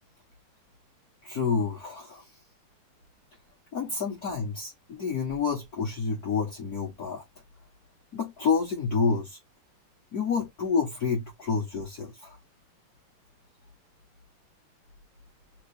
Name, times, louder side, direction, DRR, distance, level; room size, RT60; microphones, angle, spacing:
voice 1, 1.2-2.3 3.7-7.2 8.1-9.4 10.1-12.4, left 5 dB, 50° left, 1.5 m, -29 dB
3.8 x 3.6 x 3.4 m
omnidirectional pair, 2.4 m